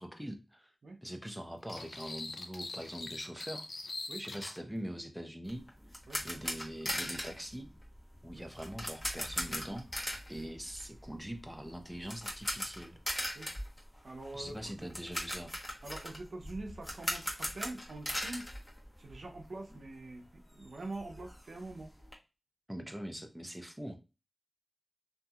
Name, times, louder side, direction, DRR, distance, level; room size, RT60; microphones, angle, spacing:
voice 1, 0.0-0.7 1.0-3.7 4.2-5.6 6.2-7.7 8.2-9.9 10.3-13.0 14.3-15.5 22.7-24.0, equal, 5° right, 5 dB, 0.6 m, -43 dB
sound 1, 1.7-4.6, left 2 dB, 75° left, 0.5 m, -43 dB
sound 2, 5.5-19.4 19.7-19.8 20.3-20.4 20.6-22.1, equal, 25° left, 1.0 m, -40 dB
voice 2, 14.0-14.6 15.8-18.4 19.0-21.9, right 2 dB, 85° right, 2 dB, 0.7 m, -44 dB
2.8 x 2.6 x 2.3 m, 0.28 s
wide cardioid pair, 55°, 0 cm